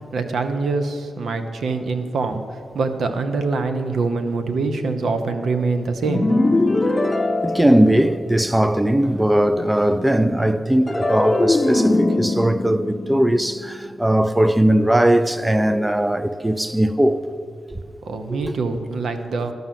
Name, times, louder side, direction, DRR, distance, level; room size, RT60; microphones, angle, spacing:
voice 1, 0.1-2.4 2.7-6.3 18.0-19.5, right 3 dB, 80° right, 0.8 m, -24 dB
sound 1, 6.1-8.5 10.9-14.2, left 2 dB, 20° left, 0.7 m, -22 dB
voice 2, 7.4-17.2 18.3-18.5, right 1 dB, 10° right, 0.4 m, -19 dB
12.5 x 5.6 x 7.5 m
cardioid pair, 70°, 0 cm